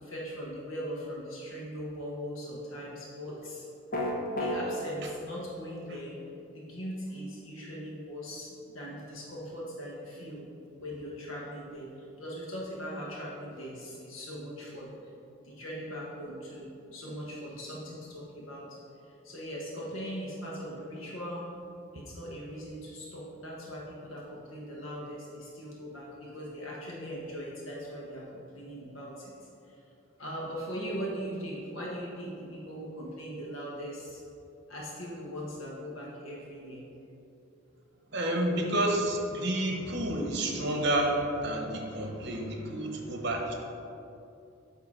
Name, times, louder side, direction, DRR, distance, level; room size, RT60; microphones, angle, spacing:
voice 1, 0.0-3.7 4.4-6.2 6.5-10.4 10.8-14.9 15.4-18.8 19.0-21.5 21.9-29.7 30.2-34.2 34.7-36.8, equal, 80° left, -5 dB, 1.0 m, -40 dB
sound 1, 3.9-4.6, left 1 dB, 45° left, 0.9 m, -29 dB
voice 2, 38.1-43.5, right 1 dB, 55° right, 1 dB, 0.8 m, -30 dB
8.3 x 2.8 x 4.8 m, 2.7 s
head